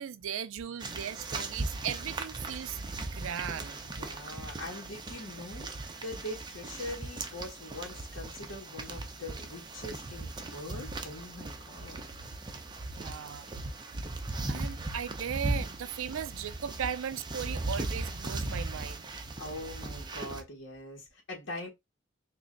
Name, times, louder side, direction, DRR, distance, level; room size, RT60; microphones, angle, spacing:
voice 1, 0.0-3.8 13.0-13.5 14.5-19.1, right 8 dB, 90° right, 0.4 m, -37 dB
sound 1, 0.8-20.4, right 2 dB, 20° right, 0.5 m, -38 dB
voice 2, 3.3-12.0 13.0-13.4 14.5-14.7 15.0-15.1 18.5-18.6 19.4-21.7, left 1 dB, 65° left, 1.2 m, -43 dB
3.2 x 2.5 x 3.7 m
head